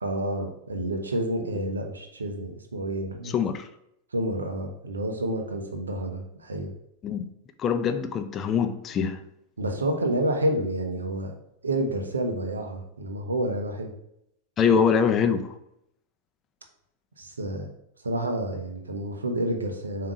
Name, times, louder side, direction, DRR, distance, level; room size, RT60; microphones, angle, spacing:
voice 1, 0.0-3.4 4.1-6.7 9.6-11.3 11.6-13.9 17.2-17.7 18.0-20.1, right 1 dB, 75° right, 0.9 m, -29 dB
voice 2, 3.2-3.7 7.0-7.3 7.6-9.2 14.6-15.5, left 6 dB, 25° left, 0.5 m, -24 dB
7.2 x 2.9 x 4.8 m
figure-of-eight pair, 90°, 0 cm